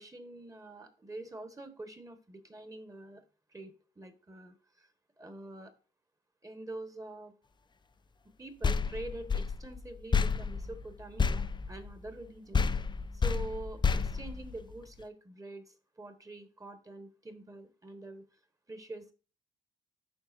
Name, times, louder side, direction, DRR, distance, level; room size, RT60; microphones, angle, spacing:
voice 1, 0.0-3.2 3.5-4.9 5.2-5.7 6.4-7.3 8.4-12.7 13.1-18.2 18.7-19.1, right 2 dB, 15° right, 9 dB, 1.3 m, -45 dB
sound 1, 8.6-12.3 12.5-15.0, left 5 dB, 25° left, 0.5 m, -31 dB
11.0 x 3.8 x 2.6 m, 0.35 s
cardioid pair, 90°, 20 cm